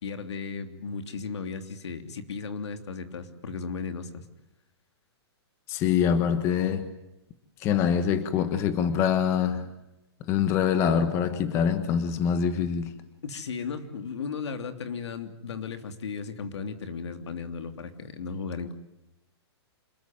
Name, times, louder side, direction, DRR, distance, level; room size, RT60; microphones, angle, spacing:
voice 1, 0.0-4.2 13.2-18.7, left 5 dB, 80° left, 3.1 m, -35 dB
voice 2, 5.7-6.9 7.6-9.6 10.3-12.9, left 8 dB, 20° left, 1.3 m, -24 dB
26.5 x 21.0 x 9.3 m
hypercardioid pair, 170°, 14 cm